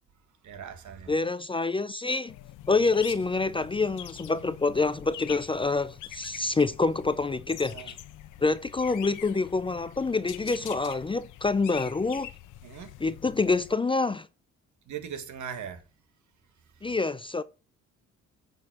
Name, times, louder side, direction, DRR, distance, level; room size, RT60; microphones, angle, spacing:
voice 1, 0.4-1.1 7.7-8.0 12.6-12.9 14.9-15.8 16.8-16.9, right 8 dB, 75° right, 1.6 m, -40 dB
voice 2, 1.1-2.3 2.7-7.9 8.4-12.3 13.0-14.3 16.8-17.4, left 3 dB, 20° left, 0.4 m, -27 dB
sound 1, 2.3-13.7, left 13 dB, 85° left, 0.9 m, -45 dB
9.5 x 5.4 x 5.9 m
cardioid pair, 90°, 30 cm